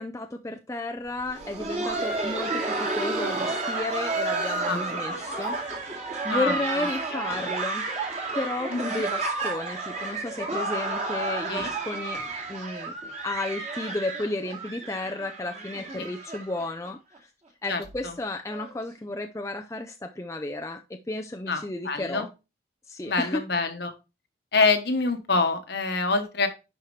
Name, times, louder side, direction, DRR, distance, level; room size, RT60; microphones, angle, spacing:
voice 1, 0.0-7.8 8.3-12.2 12.5-12.9 13.2-17.3 17.6-22.3 22.9-23.5, left 2 dB, 15° left, 0.4 m, -33 dB
Laughter, 1.2-16.9 17.2-17.3 17.8-18.0 18.5-18.7 19.8-19.9, right 3 dB, 35° right, 2.3 m, -31 dB
voice 2, 6.3-6.6 7.1-7.5 8.7-9.0 11.5-11.7 16.0-16.1 17.7-18.1 21.5-22.3 23.0-23.9 24.5-26.5, left 3 dB, 55° left, 1.1 m, -26 dB
10.5 x 4.6 x 3.2 m
head